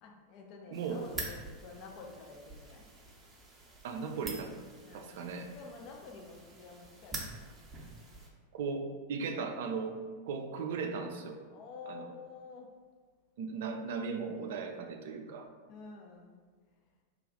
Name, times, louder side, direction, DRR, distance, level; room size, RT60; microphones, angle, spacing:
voice 1, 0.0-2.9 4.8-5.2 5.5-7.5 11.5-12.7 14.1-14.8 15.7-16.3, left 4 dB, 40° left, 1 dB, 0.5 m, -50 dB
sound 1, 0.7-8.3, right 2 dB, 20° right, 0.7 m, -46 dB
voice 2, 0.7-1.0 3.8-4.5 4.9-5.5 8.5-10.0 10.2-11.4 11.9-12.1 13.4-15.5, right 5 dB, 55° right, 5 dB, 0.4 m, -37 dB
3.2 x 2.4 x 3.8 m, 1.5 s
figure-of-eight pair, 90°, 0 cm